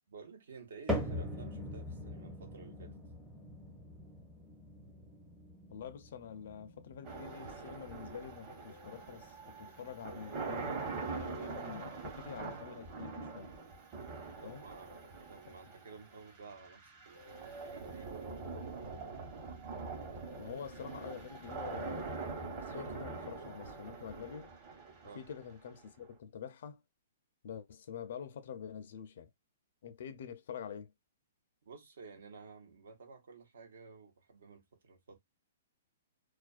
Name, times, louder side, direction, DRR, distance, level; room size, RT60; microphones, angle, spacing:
voice 1, 0.1-3.0 14.4-18.4 25.0-25.2 31.6-35.2, right 4 dB, 75° right, 0.8 m, -53 dB
sound 1, 0.9-17.2 17.5-18.0 18.6-18.7 19.6-19.7, left 1 dB, 5° right, 0.6 m, -45 dB
voice 2, 5.7-13.5 14.4-14.6 20.4-24.5 25.2-26.8 27.4-29.3 29.8-30.9, left 8 dB, 60° left, 0.4 m, -47 dB
sound 2, 7.0-26.1, right 4 dB, 35° right, 1.0 m, -44 dB
2.4 x 2.2 x 2.4 m
hypercardioid pair, 150°, 0 cm